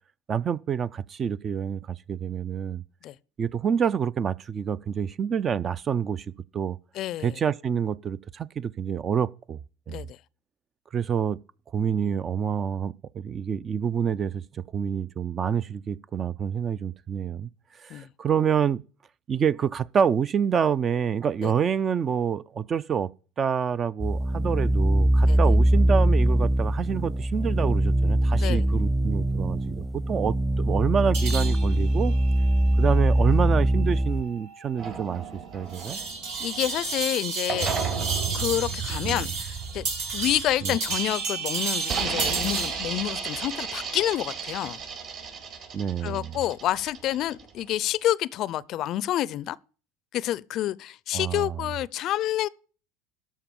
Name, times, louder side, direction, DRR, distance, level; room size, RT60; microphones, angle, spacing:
voice 1, 0.3-2.8 3.4-6.3 6.5-6.8 7.2-9.6 9.9-10.0 10.9-11.4 11.7-17.5 17.8-18.8 19.3-23.1 23.4-32.1 32.8-36.0 39.0-39.3 40.6-40.8 45.7-46.4 51.1-51.6, right 7 dB, 35° right, 0.4 m, -27 dB
voice 2, 6.9-7.4 9.9-10.2 17.9-18.1 21.4-21.5 25.3-25.4 28.4-28.7 35.9-36.1 36.4-37.8 38.3-39.9 40.1-44.8 46.0-49.6 50.1-52.5, left 13 dB, 50° left, 0.4 m, -28 dB
sound 1, 24.0-34.2, right 1 dB, 15° right, 0.9 m, -22 dB
sound 2, 31.1-43.0, right 5 dB, 80° right, 3.5 m, -33 dB
sound 3, 34.8-37.1 37.5-41.1 41.8-47.6, right 6 dB, 50° right, 4.3 m, -34 dB
13.0 x 4.9 x 7.0 m
supercardioid pair, 95°, 0 cm